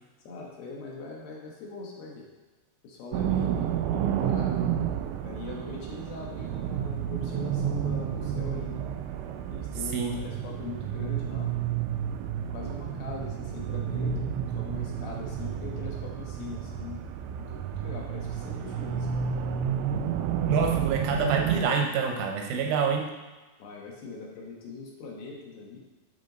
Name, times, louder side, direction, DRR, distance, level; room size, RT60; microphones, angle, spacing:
voice 1, 0.2-2.3 2.8-4.6 5.1-8.8 9.5-11.5 12.5-17.0 17.4-19.1 23.6-25.8, left 3 dB, 70° left, -3 dB, 2.9 m, -41 dB
sound 1, 3.1-21.6, right 9 dB, 90° right, 2.8 m, -30 dB
voice 2, 20.4-23.1, right 5 dB, 75° right, 2 dB, 2.2 m, -27 dB
11.0 x 3.7 x 3.9 m, 1.2 s
omnidirectional pair, 4.9 m